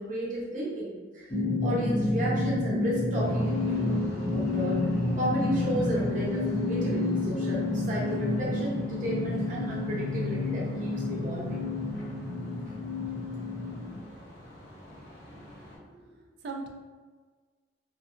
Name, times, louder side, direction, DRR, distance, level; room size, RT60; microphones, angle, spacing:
voice 1, 0.0-1.3 1.6-4.0 4.3-4.8 5.1-11.6, equal, 40° right, -5 dB, 0.8 m, -33 dB
sound 1, 1.3-14.0, left 2 dB, 20° left, 0.4 m, -29 dB
sound 2, 3.2-15.8, equal, 55° left, 0.9 m, -47 dB
voice 2, 15.2-16.7, right 3 dB, 60° right, 2 dB, 0.4 m, -43 dB
2.6 x 2.5 x 2.4 m, 1.4 s
head